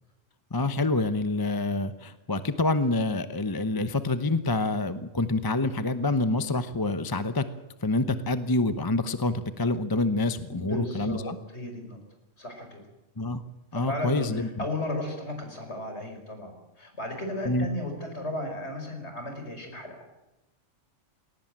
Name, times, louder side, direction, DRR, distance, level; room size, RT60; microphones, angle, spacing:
voice 1, 0.5-7.4 7.8-11.4 13.2-13.4 13.7-14.5 17.4-17.7, left 2 dB, 20° left, 11 dB, 0.9 m, -27 dB
voice 2, 10.5-12.0 12.4-12.8 13.7-20.0, left 1 dB, 55° left, 5 dB, 5.5 m, -35 dB
20.5 x 18.5 x 8.9 m, 0.98 s
omnidirectional pair, 1.3 m